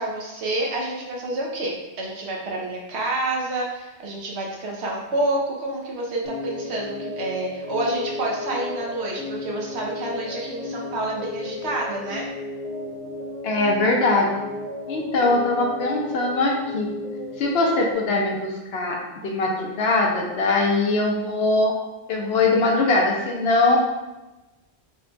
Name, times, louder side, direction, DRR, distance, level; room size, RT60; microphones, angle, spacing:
voice 1, 0.0-12.2, right 2 dB, 75° right, -1 dB, 1.0 m, -28 dB
sound 1, 6.2-17.9, left 2 dB, 40° left, 0.8 m, -34 dB
voice 2, 13.4-14.5 14.9-16.9 17.4-21.7 22.1-23.8, left 2 dB, 70° left, 0 dB, 0.8 m, -21 dB
5.0 x 2.2 x 2.6 m, 1.1 s
omnidirectional pair, 1.1 m